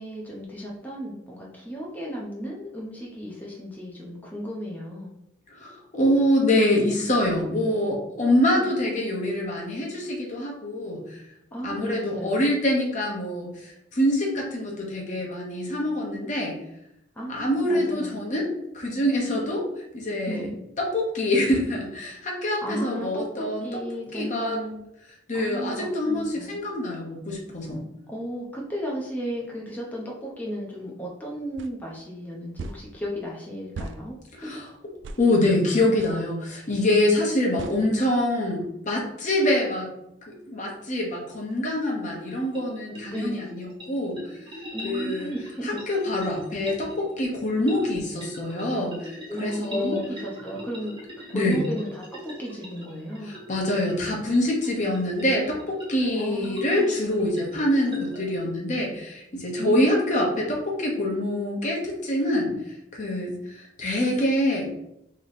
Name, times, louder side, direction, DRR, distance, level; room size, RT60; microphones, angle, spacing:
voice 1, 0.0-5.1 8.3-8.7 11.5-12.5 17.2-18.4 20.3-20.6 22.6-24.8 25.3-26.6 28.1-34.6 43.1-43.6 44.7-45.7 49.3-53.3 56.2-57.0 59.6-60.2, equal, 10° left, -3 dB, 0.7 m, -34 dB
voice 2, 5.5-11.2 11.6-16.6 17.3-19.6 19.9-20.5 20.8-23.8 24.1-24.6 25.3-27.8 34.3-34.7 35.2-39.9 40.3-44.2 44.8-45.3 45.6-50.0 51.3-51.6 53.3-64.7, left 1 dB, 40° left, -1 dB, 1.0 m, -25 dB
sound 1, 31.6-31.7 32.6-32.8 33.7-34.0 35.0-35.2 36.0-36.2 37.6-37.8, right 3 dB, 70° right, 0.3 m, -36 dB
sound 2, 42.3-58.4, equal, 25° right, 1.4 m, -42 dB
3.2 x 2.9 x 4.1 m, 0.81 s
head